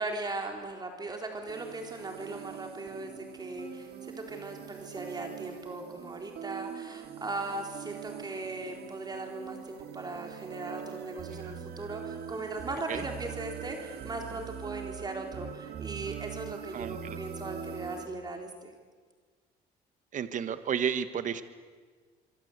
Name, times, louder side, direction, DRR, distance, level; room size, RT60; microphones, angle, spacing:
voice 1, 0.0-18.7, right 2 dB, 25° right, 3 dB, 3.9 m, -38 dB
sound 1, 1.4-18.1, right 9 dB, 70° right, 2.8 m, -43 dB
voice 2, 16.7-17.2 20.1-21.4, right 8 dB, 50° right, 12 dB, 1.4 m, -32 dB
25.5 x 24.0 x 8.2 m, 1.5 s
cardioid pair, 110°, 17 cm